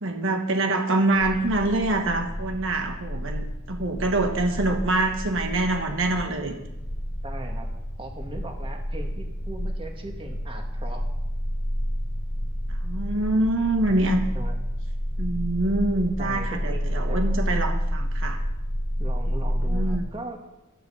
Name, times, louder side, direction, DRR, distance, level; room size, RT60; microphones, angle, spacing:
voice 1, 0.0-6.6 12.8-14.2 15.2-18.4 19.3-20.0, right 2 dB, 60° right, 4 dB, 1.5 m, -25 dB
sound 1, 1.1-20.0, equal, 55° left, 2.1 m, -30 dB
voice 2, 7.2-7.7 8.0-11.0 14.3-14.6 16.2-17.4 19.0-20.4, right 2 dB, 25° right, 3 dB, 1.7 m, -38 dB
15.0 x 11.0 x 5.7 m, 0.96 s
head